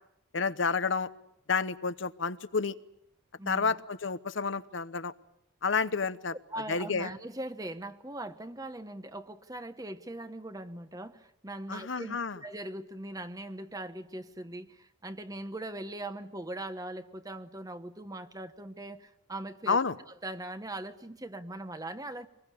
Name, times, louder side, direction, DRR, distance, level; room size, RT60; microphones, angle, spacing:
voice 1, 0.3-1.1 1.5-2.7 3.5-5.1 5.6-6.3 6.7-7.1 11.7-12.4 19.7-19.9, left 5 dB, 70° left, 13 dB, 0.9 m, -30 dB
voice 2, 3.4-3.7 6.3-19.8 20.2-22.3, right 1 dB, 20° right, 10 dB, 1.1 m, -40 dB
25.0 x 21.0 x 8.5 m, 0.77 s
head